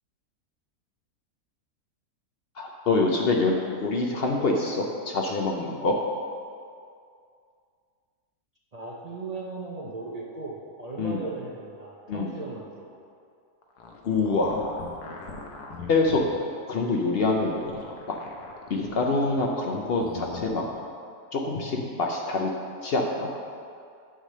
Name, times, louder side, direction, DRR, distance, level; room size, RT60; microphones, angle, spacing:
voice 1, 2.6-6.0 11.0-11.2 12.1-12.3 14.1-14.8 15.9-16.2 16.7-17.8 18.1-18.2 18.7-20.6 21.3-22.5 22.8-23.3, left 3 dB, 60° left, 1 dB, 0.6 m, -25 dB
voice 2, 8.7-13.0, right 3 dB, 60° right, -3 dB, 0.4 m, -37 dB
sound 1, 13.6-16.4 17.1-19.3 19.6-20.5, left 4 dB, 80° left, 1.3 m, -41 dB
9.0 x 3.3 x 6.4 m, 2.3 s
omnidirectional pair, 1.6 m